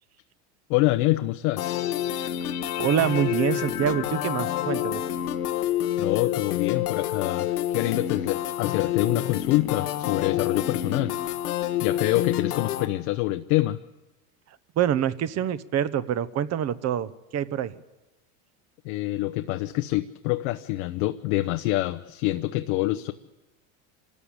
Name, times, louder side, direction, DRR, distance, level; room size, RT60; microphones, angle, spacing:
voice 1, 0.7-1.9 6.0-11.1 11.8-13.8 18.8-23.1, left 17 dB, 65° left, 8 dB, 0.9 m, -26 dB
sound 1, 1.6-12.9, left 11 dB, 90° left, 1.5 m, -28 dB
voice 2, 2.8-5.0 14.8-17.8, right 9 dB, 35° right, 15 dB, 1.0 m, -26 dB
26.5 x 13.5 x 8.7 m, 1.1 s
supercardioid pair, 115°, 44 cm